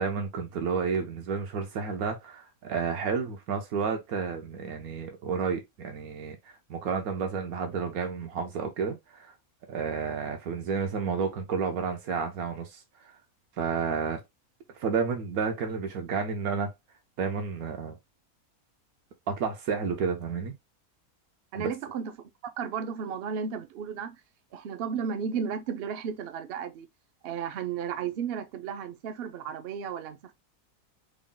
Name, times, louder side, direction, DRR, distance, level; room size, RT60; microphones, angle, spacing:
voice 1, 0.0-9.3 9.7-13.1 13.6-14.2 14.7-16.7 17.2-18.0 19.3-20.5 21.5-21.7, right 5 dB, 80° right, 1.2 m, -31 dB
voice 2, 21.5-22.1 22.4-24.2 24.5-26.9 27.2-30.3, right 7 dB, 65° right, 0.6 m, -34 dB
3.6 x 2.1 x 3.7 m
omnidirectional pair, 1.5 m